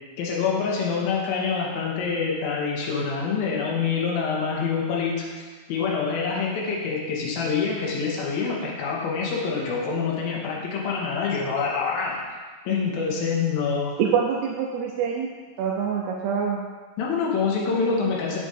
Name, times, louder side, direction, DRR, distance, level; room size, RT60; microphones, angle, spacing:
voice 1, 0.2-5.3 5.7-12.2 12.7-14.0 17.0-18.4, left 5 dB, 65° left, -3 dB, 2.6 m, -26 dB
voice 2, 14.0-15.3 15.6-16.6, right 7 dB, 85° right, -2 dB, 2.4 m, -25 dB
12.5 x 7.3 x 3.4 m, 1.5 s
omnidirectional pair, 5.8 m